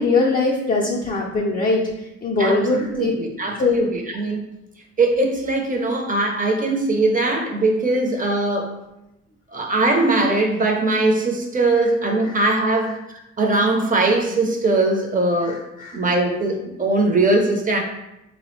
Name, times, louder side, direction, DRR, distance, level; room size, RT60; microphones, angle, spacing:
voice 1, 0.0-1.8 2.2-3.1 3.6-3.8 15.4-16.0, left 3 dB, 30° left, -4 dB, 0.4 m, -21 dB
voice 2, 2.4-4.5 5.0-8.7 9.5-15.6 15.9-17.8, right 2 dB, 25° right, 2 dB, 0.6 m, -21 dB
3.5 x 2.0 x 3.1 m, 0.89 s
cardioid pair, 90°, 30 cm